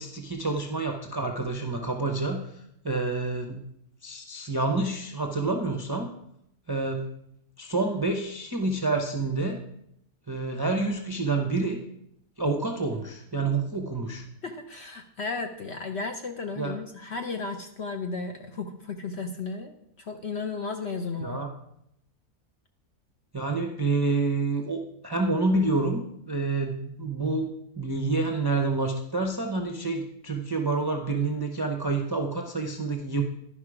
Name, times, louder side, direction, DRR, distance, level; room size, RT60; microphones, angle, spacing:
voice 1, 0.0-2.5 2.8-3.6 4.0-6.1 6.7-7.0 7.6-9.6 10.3-11.8 12.4-14.2 16.6-16.7 21.2-21.5 23.3-27.5 27.8-33.2, right 3 dB, 25° right, 3 dB, 0.5 m, -28 dB
voice 2, 14.4-21.4, left 4 dB, 55° left, 5 dB, 0.8 m, -34 dB
11.0 x 5.4 x 4.8 m, 0.76 s
omnidirectional pair, 1.6 m